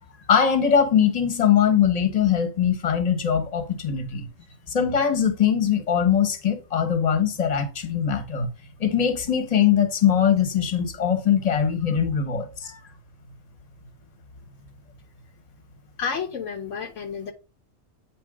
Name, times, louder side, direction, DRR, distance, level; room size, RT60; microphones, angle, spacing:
voice 1, 0.3-4.3 4.7-8.5 8.8-12.8, left 8 dB, 30° left, 1.0 m, -21 dB
voice 2, 16.0-17.3, left 6 dB, 70° left, 1.0 m, -31 dB
8.5 x 3.1 x 4.8 m
omnidirectional pair, 1.4 m